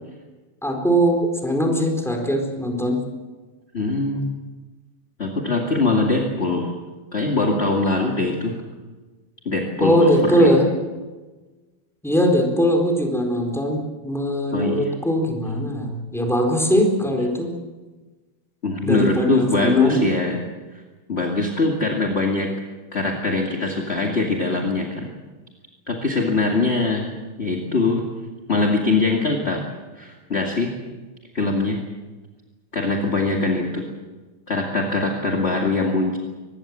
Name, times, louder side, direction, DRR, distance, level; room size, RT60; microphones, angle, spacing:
voice 1, 0.6-3.0 9.8-10.7 12.0-17.6 18.8-20.0, equal, ahead, 2 dB, 4.3 m, -20 dB
voice 2, 3.7-4.3 5.2-6.7 7.1-8.6 9.5-10.6 14.5-14.9 18.6-20.4 21.1-22.5 22.9-25.1 25.9-27.1 27.4-28.0 28.5-29.7 30.0-30.7 31.3-31.8 32.7-33.8 34.5-36.2, left 3 dB, 30° left, 1 dB, 2.3 m, -22 dB
24.5 x 21.0 x 7.5 m, 1.3 s
omnidirectional pair, 2.4 m